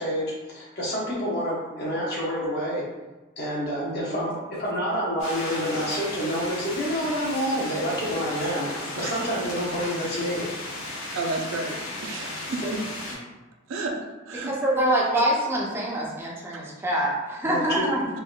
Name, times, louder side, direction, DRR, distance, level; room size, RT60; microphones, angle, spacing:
voice 1, 0.0-2.8 3.4-8.7 9.0-10.5 12.6-12.7 13.1-13.2 17.4-17.9, equal, 50° left, -5 dB, 0.9 m, -28 dB
voice 2, 3.8-4.2 9.0-9.2 11.1-12.8 13.7-14.5 16.5-16.6, right 3 dB, 70° right, 2 dB, 0.4 m, -32 dB
sound 1, 5.2-13.1, left 1 dB, 80° left, 0.9 m, -35 dB
voice 3, 14.3-18.1, right 1 dB, 10° right, -4 dB, 0.4 m, -25 dB
3.5 x 2.4 x 2.2 m, 1.2 s
head